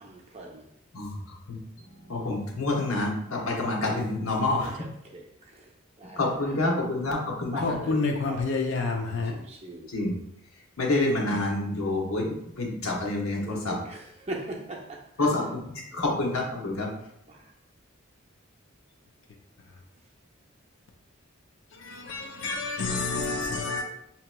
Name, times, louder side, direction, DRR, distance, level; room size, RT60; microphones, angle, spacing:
voice 1, 0.0-0.6 5.1-5.2 6.0-6.2 7.5-8.4 9.3-9.9 13.4-14.0 14.3-15.3 17.3-17.4, right 2 dB, 30° right, 0.6 m, -39 dB
voice 2, 2.1-4.9 6.2-7.8 9.9-10.2 10.8-13.8 15.2-16.9, left 2 dB, 85° left, 1.0 m, -28 dB
voice 3, 7.6-9.3 21.8-23.8, left 3 dB, 60° left, 0.4 m, -28 dB
5.7 x 2.9 x 2.2 m
head